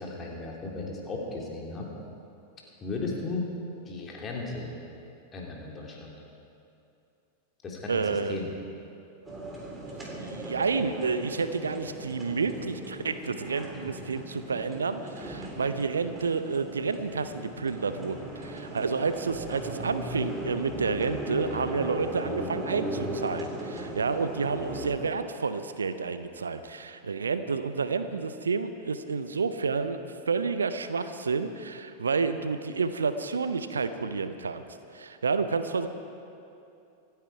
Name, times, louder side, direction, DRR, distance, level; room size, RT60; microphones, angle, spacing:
voice 1, 0.0-1.9 2.8-3.5 3.9-4.7 5.3-6.1 7.6-8.5, left 3 dB, 25° left, -2 dB, 3.0 m, -35 dB
voice 2, 7.9-8.4 10.1-30.0 30.3-34.7 34.9-35.9, right 4 dB, 70° right, 11 dB, 0.7 m, -30 dB
sound 1, 9.2-24.9, right 1 dB, 10° right, 3.4 m, -38 dB
26.0 x 9.4 x 4.8 m, 2.7 s
figure-of-eight pair, 90°, 0 cm